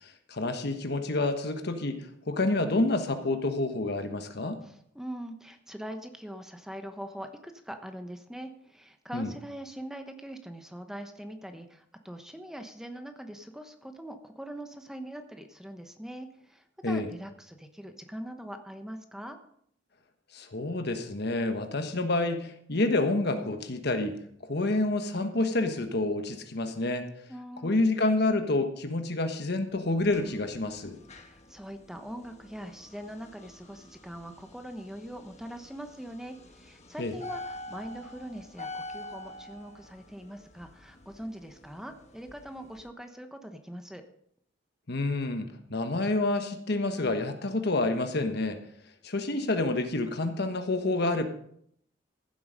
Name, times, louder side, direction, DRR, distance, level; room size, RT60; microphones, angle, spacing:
voice 1, 0.0-4.6 9.1-9.3 16.8-17.1 20.3-24.2 24.4-27.1 27.6-31.0 37.0-37.1 44.9-48.6 49.0-51.3, left 2 dB, 60° left, 7 dB, 1.3 m, -28 dB
voice 2, 4.6-19.4 27.3-28.1 31.2-44.0, equal, 5° right, 6 dB, 1.0 m, -42 dB
sound 1, 29.8-42.9, left 2 dB, 40° left, 1.4 m, -47 dB
15.0 x 7.8 x 5.2 m, 0.68 s
head